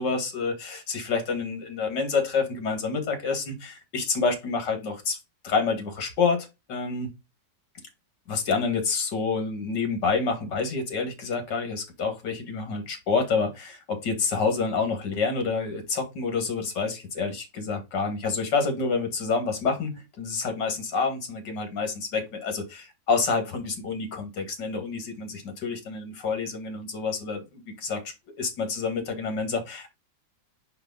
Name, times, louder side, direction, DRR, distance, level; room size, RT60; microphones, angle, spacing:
voice 1, 0.0-5.2 5.4-7.1 8.3-29.9, left 4 dB, 80° left, 2.4 m, -28 dB
5.3 x 4.9 x 3.9 m
omnidirectional pair, 1.9 m